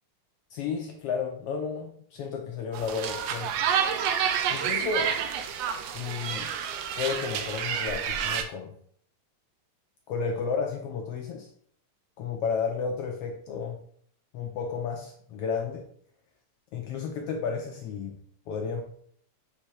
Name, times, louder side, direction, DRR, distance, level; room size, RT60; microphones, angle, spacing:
voice 1, 0.5-3.5 4.5-5.1 5.9-6.5 7.0-8.7 10.1-11.5 12.2-13.8 14.3-15.8 16.7-18.1 18.5-18.8, left 5 dB, 85° left, 2 dB, 1.3 m, -32 dB
sound 1, 2.7-8.4, right 8 dB, 80° right, 1.5 m, -29 dB
7.6 x 3.3 x 4.7 m, 0.62 s
omnidirectional pair, 3.5 m